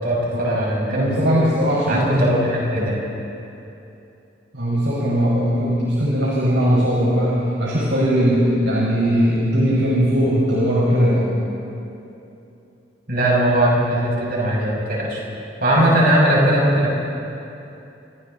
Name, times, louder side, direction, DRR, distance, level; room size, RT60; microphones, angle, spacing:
voice 1, 0.0-1.4 1.9-3.1 13.1-15.2 15.6-16.9, right 1 dB, 55° right, -4 dB, 7.5 m, -19 dB
voice 2, 0.9-2.3 4.5-11.3, equal, 80° right, -5 dB, 5.4 m, -19 dB
30.0 x 26.0 x 4.2 m, 2.8 s
head